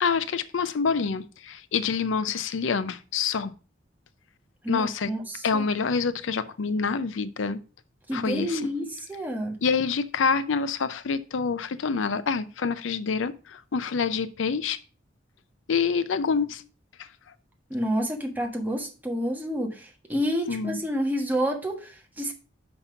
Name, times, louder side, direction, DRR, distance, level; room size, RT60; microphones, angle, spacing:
voice 1, 0.0-3.5 4.7-5.1 5.4-7.6 8.1-8.7 9.6-14.8 15.7-16.6 17.0-17.1 20.5-20.8, left 5 dB, 80° left, 0.5 m, -27 dB
voice 2, 4.6-5.6 8.1-9.6 17.7-22.3, equal, 10° right, 1.3 m, -29 dB
5.7 x 5.4 x 5.6 m
head